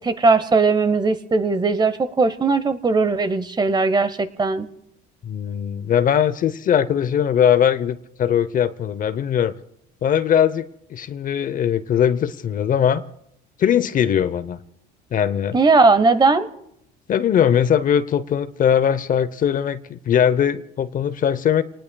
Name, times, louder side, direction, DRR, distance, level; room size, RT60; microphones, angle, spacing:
voice 1, 0.0-4.7 15.5-16.5, right 3 dB, 20° right, 1.0 m, -18 dB
voice 2, 5.2-9.5 10.0-13.0 13.6-14.6 15.1-15.6 17.1-21.6, left 9 dB, 45° left, 0.7 m, -20 dB
29.0 x 19.0 x 2.3 m
cardioid pair, 105°, 20 cm